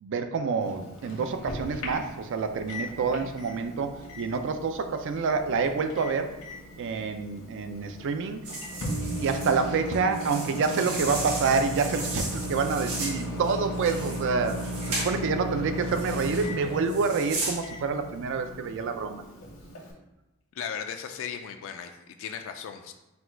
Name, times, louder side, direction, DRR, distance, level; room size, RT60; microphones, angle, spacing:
voice 1, 0.0-6.4 6.8-8.4 9.2-19.2, right 5 dB, 55° right, 8 dB, 0.4 m, -28 dB
Microwave oven, 0.6-19.9, equal, 90° left, 1.1 m, -36 dB
sound 1, 8.4-15.2 15.9-16.5 16.9-17.6, right 2 dB, 85° right, 1.4 m, -36 dB
voice 2, 20.5-22.9, left 7 dB, 60° left, 6 dB, 0.3 m, -36 dB
4.3 x 2.3 x 4.3 m, 1.0 s
head